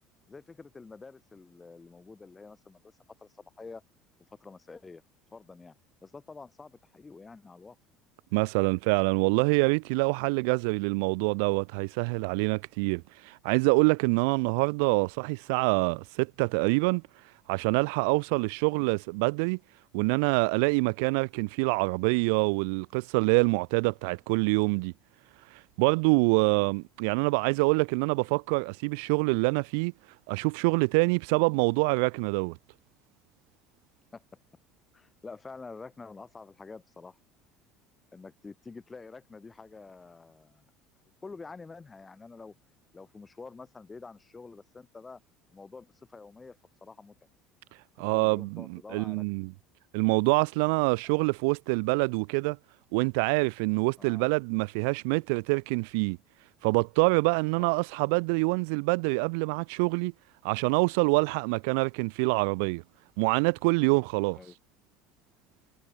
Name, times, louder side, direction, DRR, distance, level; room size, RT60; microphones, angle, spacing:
voice 1, 0.3-2.9 3.2-3.8 4.3-5.0 5.3-5.8 6.0-7.8 18.7-18.9 26.5-26.7 34.1-34.2 34.9-37.2 38.1-40.7 41.2-42.5 42.9-45.2 45.5-47.1 48.1-49.2 54.0-54.3 57.6-57.7 64.3-64.5, left 4 dB, 10° left, 6.7 m, -47 dB
voice 2, 8.3-17.0 17.5-19.6 19.9-24.9 25.5-29.9 30.3-32.6 48.0-49.5 49.9-52.6 52.9-56.2 56.6-60.1 60.4-62.8 63.2-64.4, right 32 dB, 85° right, 0.8 m, -26 dB
cardioid pair, 170°, 0 cm